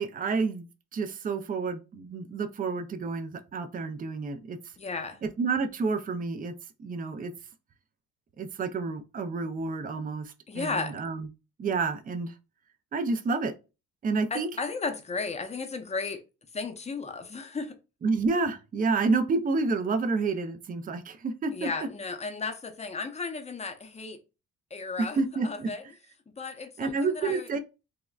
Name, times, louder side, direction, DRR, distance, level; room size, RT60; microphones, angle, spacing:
voice 1, 0.0-4.6 5.2-7.3 8.4-11.3 11.6-12.3 12.9-13.6 14.0-14.5 18.0-21.7 25.0-25.7 26.8-27.6, right 4 dB, 30° right, 0.4 m, -29 dB
voice 2, 4.8-5.2 10.5-10.9 14.3-16.2 16.5-17.8 21.5-24.2 24.7-25.8 26.3-27.5, left 4 dB, 20° left, 0.6 m, -34 dB
3.5 x 2.1 x 2.3 m
cardioid pair, 90°, 30 cm